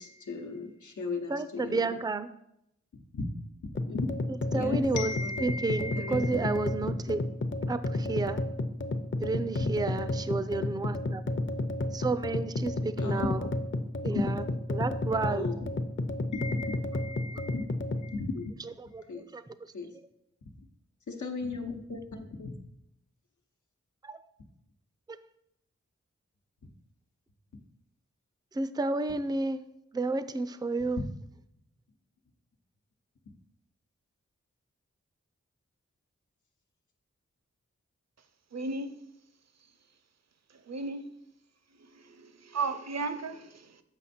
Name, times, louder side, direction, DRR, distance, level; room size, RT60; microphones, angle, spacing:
voice 1, 0.0-1.9 3.1-3.2 3.9-4.1 4.5-6.7 7.1-7.2 13.0-13.3 14.0-14.2 15.2-15.6 16.3-17.7 18.0-18.5 19.1-19.3 19.7-19.9 21.1-22.5 30.8-31.1, left 4 dB, 85° left, 1.0 m, -36 dB
voice 2, 1.3-2.3 4.5-5.1 5.4-7.2 7.7-8.4 9.2-11.2 11.9-13.4 14.0-14.4 14.7-15.5 18.9-19.0 19.3-19.4 24.0-24.2 28.5-29.7 29.9-31.0, right 3 dB, 15° right, 0.4 m, -31 dB
sound 1, 3.7-18.1, left 2 dB, 40° left, 0.7 m, -31 dB
voice 3, 38.5-38.9 40.7-41.1 41.8-43.8, right 3 dB, 65° right, 0.7 m, -35 dB
7.3 x 5.3 x 4.3 m
cardioid pair, 45°, 29 cm